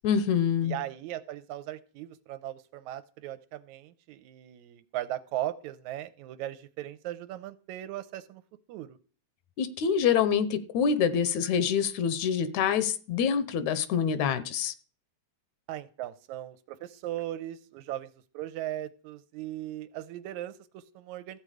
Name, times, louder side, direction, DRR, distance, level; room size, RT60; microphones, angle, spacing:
voice 1, 0.0-0.8 9.6-14.7, left 7 dB, 75° left, 13 dB, 2.1 m, -26 dB
voice 2, 0.6-8.4 8.7-9.0 15.7-21.4, right 13 dB, 85° right, 13 dB, 2.0 m, -38 dB
14.0 x 7.9 x 4.9 m, 0.41 s
omnidirectional pair, 3.4 m